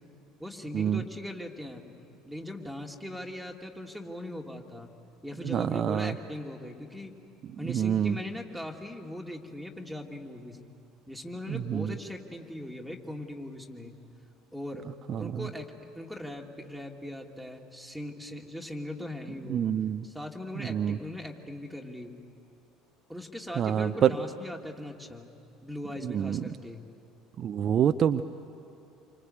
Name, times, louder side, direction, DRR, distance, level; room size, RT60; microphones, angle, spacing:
voice 1, 0.4-1.8 2.2-4.9 5.2-7.1 7.6-10.6 11.1-13.9 14.5-14.9 15.2-19.7 20.0-22.1 23.1-25.3 25.6-26.8, left 1 dB, ahead, 1 dB, 2.8 m, -40 dB
voice 2, 5.5-6.1 7.7-8.2 11.5-11.9 15.1-15.3 19.5-20.0 20.7-21.0 23.6-24.1 26.0-26.4 27.4-28.2, right 9 dB, 45° right, 10 dB, 0.7 m, -26 dB
28.0 x 25.0 x 8.3 m, 2.6 s
figure-of-eight pair, 60°, 0 cm